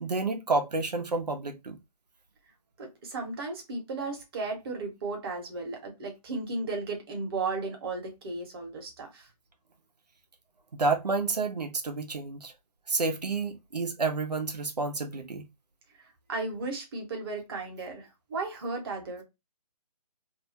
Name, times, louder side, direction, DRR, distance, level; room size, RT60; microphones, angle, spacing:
voice 1, 0.0-1.8 10.7-12.5 12.9-15.5, right 3 dB, 80° right, 0.9 m, -30 dB
voice 2, 2.8-9.3 16.3-19.2, right 3 dB, 35° right, 1.1 m, -35 dB
2.7 x 2.2 x 2.7 m
figure-of-eight pair, 150°, 20 cm